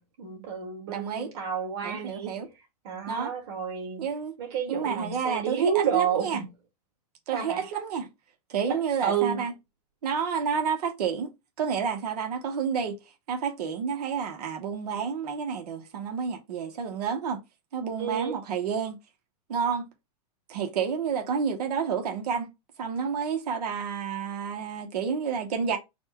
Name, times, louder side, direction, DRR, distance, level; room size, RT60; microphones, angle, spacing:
voice 1, 0.0-2.3 2.8-4.0 4.4-6.5 7.3-7.6 8.7-9.4 18.0-18.4, right 7 dB, 45° right, 1.9 m, -30 dB
voice 2, 0.9-1.3 1.8-2.5 3.1-3.3 4.0-4.4 4.7-6.4 7.3-8.1 8.5-9.5 10.0-17.4 17.7-19.0 19.5-19.9 20.5-22.5 22.8-25.8, right 6 dB, 75° right, 1.1 m, -30 dB
4.1 x 2.3 x 4.4 m
supercardioid pair, 160°, 20 cm